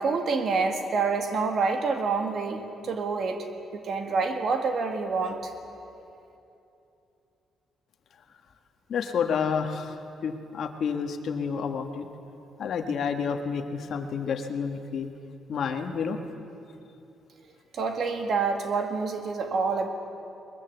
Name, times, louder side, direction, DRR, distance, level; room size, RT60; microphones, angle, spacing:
voice 1, 0.0-3.5 3.7-5.5 17.7-19.9, right 4 dB, 50° right, 5 dB, 2.0 m, -27 dB
voice 2, 8.9-12.1 12.6-15.1 15.5-16.2, left 6 dB, 55° left, 6 dB, 1.5 m, -29 dB
21.5 x 21.0 x 8.0 m, 2.8 s
cardioid pair, 150°, 0 cm